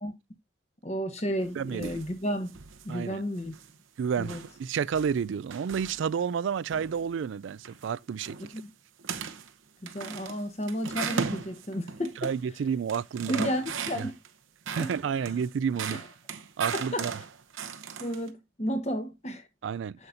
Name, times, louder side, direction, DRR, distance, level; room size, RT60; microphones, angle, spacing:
voice 1, 0.8-2.6 2.8-3.5 4.2-4.4 8.4-8.7 9.8-12.3 13.3-14.1 14.8-14.9 15.9-16.0 16.7-17.1 18.0-19.4 20.0-20.1, equal, 35° left, 1.3 m, -32 dB
sound 1, 1.4-2.1 2.5-2.9 3.4-3.8 4.2-6.3 6.7-7.0 7.5-7.9 8.2-8.6 9.0-9.5 9.9-12.4 12.7-14.3 14.7-18.3, right 5 dB, 90° right, 0.9 m, -37 dB
voice 2, 1.6-1.9 2.9-3.2 4.0-8.4 12.2-13.5 14.0-14.1 14.8-16.0 16.6-17.1 19.6-20.0, right 7 dB, 75° right, 0.3 m, -30 dB
7.8 x 7.3 x 2.5 m
head